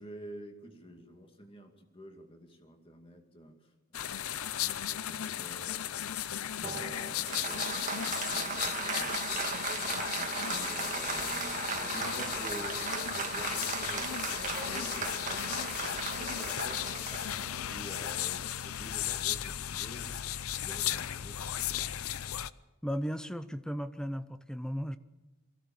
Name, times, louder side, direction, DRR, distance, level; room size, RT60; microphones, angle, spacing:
voice 1, 0.0-9.8 10.1-16.8 17.4-22.3, equal, 25° left, 4 dB, 2.3 m, -50 dB
sound 1, 3.9-22.5, left 11 dB, 90° left, 0.6 m, -35 dB
Applause, 6.6-18.5, right 5 dB, 35° right, 1.6 m, -37 dB
voice 2, 22.8-25.0, equal, 5° left, 13 dB, 0.7 m, -35 dB
23.5 x 16.0 x 7.3 m, 1.1 s
head